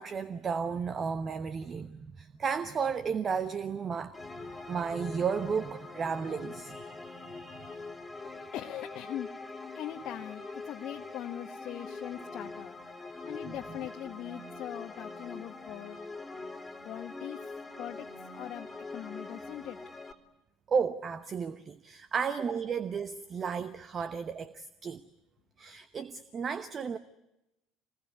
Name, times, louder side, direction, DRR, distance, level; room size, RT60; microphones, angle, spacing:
voice 1, 0.0-7.9 13.4-13.5 20.7-25.0 25.6-27.0, right 6 dB, 35° right, 1.0 m, -34 dB
sound 1, 4.1-20.1, left 3 dB, 10° left, 2.8 m, -44 dB
voice 2, 8.5-9.3 9.7-12.7 13.3-16.0 16.8-17.4 17.8-18.1 18.3-19.8, left 11 dB, 45° left, 1.2 m, -41 dB
26.5 x 21.0 x 9.7 m
figure-of-eight pair, 65°, 0 cm